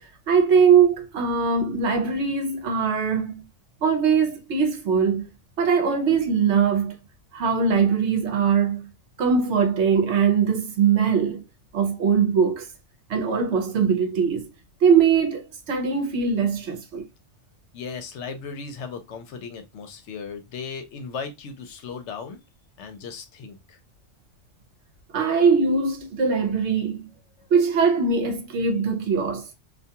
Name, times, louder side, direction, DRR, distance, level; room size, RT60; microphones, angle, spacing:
voice 1, 0.3-3.4 3.8-5.3 5.6-7.0 7.3-8.9 9.2-11.4 11.7-12.7 13.1-14.5 14.8-17.0 25.1-27.1 27.5-29.5, right 6 dB, 70° right, 0.9 m, -21 dB
voice 2, 17.7-22.4 22.8-23.8 27.4-27.5, left 5 dB, 70° left, 0.9 m, -36 dB
2.4 x 2.2 x 2.7 m
omnidirectional pair, 1.3 m